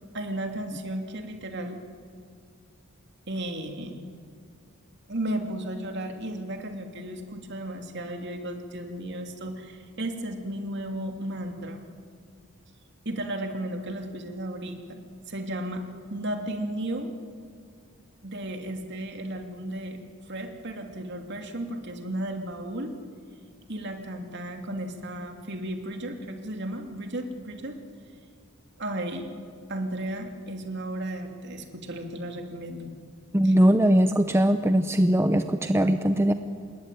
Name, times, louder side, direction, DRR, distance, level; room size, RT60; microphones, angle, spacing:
voice 1, 0.1-1.8 3.3-4.0 5.1-11.8 13.0-15.8 16.1-17.1 18.2-20.0 20.3-22.9 23.7-27.8 28.8-29.3 29.7-32.9 33.4-33.5, right 1 dB, 50° right, 4 dB, 2.8 m, -34 dB
voice 2, 33.3-36.3, equal, 10° right, 8 dB, 0.7 m, -21 dB
27.0 x 21.0 x 9.3 m, 2.3 s
head